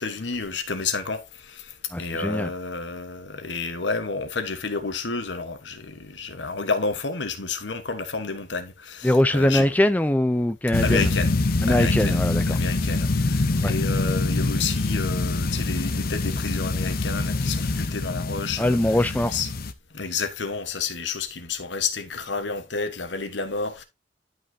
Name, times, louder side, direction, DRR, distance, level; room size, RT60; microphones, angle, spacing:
voice 1, 0.0-1.7 2.0-9.7 10.8-11.3 11.7-12.2 12.5-18.8 19.3-19.5 19.9-23.8, left 4 dB, 80° left, 1.3 m, -30 dB
voice 2, 1.9-2.5 9.0-11.1 11.6-12.6 13.6-13.7 18.6-19.4, left 1 dB, 10° left, 0.5 m, -22 dB
sound 1, 10.7-19.7, left 2 dB, 55° left, 0.8 m, -25 dB
11.5 x 5.5 x 2.8 m
head